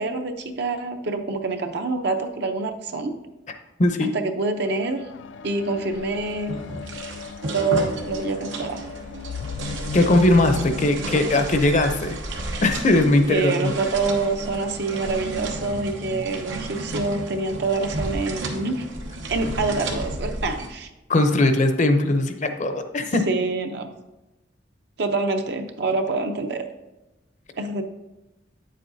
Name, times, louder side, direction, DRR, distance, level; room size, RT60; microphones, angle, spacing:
voice 1, 0.0-3.2 4.1-5.0 5.4-6.6 7.5-8.8 13.3-18.8 19.3-20.9 23.3-23.9 25.0-26.6 27.6-27.8, right 3 dB, 60° right, 6 dB, 0.7 m, -26 dB
voice 2, 3.8-4.1 9.9-12.2 12.6-13.7 21.1-23.3, left 2 dB, 40° left, 7 dB, 0.6 m, -19 dB
sound 1, 4.6-14.1 14.9-15.0, left 6 dB, 75° left, 0.3 m, -37 dB
sound 2, 5.9-20.7, right 1 dB, 90° right, 1.0 m, -33 dB
8.8 x 7.5 x 2.7 m, 1.0 s
head